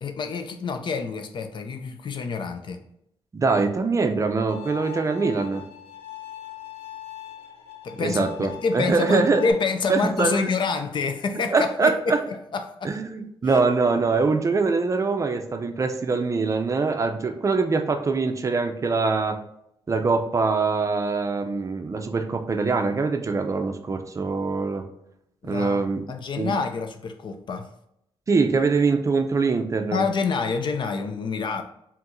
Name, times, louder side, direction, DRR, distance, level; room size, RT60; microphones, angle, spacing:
voice 1, 0.0-2.8 7.8-12.9 13.4-13.7 25.4-27.7 29.9-31.6, left 4 dB, 55° left, 7 dB, 0.5 m, -27 dB
voice 2, 3.3-5.6 8.0-9.4 9.9-10.5 11.5-12.2 12.8-19.4 19.9-24.8 25.4-26.0 26.4-26.5 28.3-30.0, right 4 dB, 35° right, 6 dB, 0.5 m, -23 dB
Bowed string instrument, 4.5-9.5, left 13 dB, 80° left, 0.8 m, -41 dB
4.5 x 3.6 x 2.6 m, 0.78 s
wide cardioid pair, 120°, 10 cm